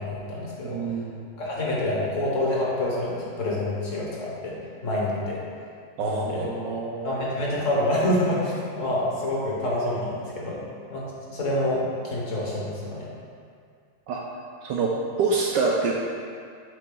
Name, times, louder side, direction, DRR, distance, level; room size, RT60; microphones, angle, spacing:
voice 1, 0.0-1.0 1.4-4.6 4.8-5.4 6.0-6.5 7.0-10.6 10.9-13.1, left 1 dB, 45° left, -5 dB, 1.1 m, -27 dB
voice 2, 0.6-1.2 6.0-7.1 14.1-14.2 14.6-14.9 15.2-15.9, right 4 dB, 75° right, -2 dB, 1.0 m, -26 dB
8.4 x 3.9 x 3.7 m, 2.2 s
omnidirectional pair, 2.4 m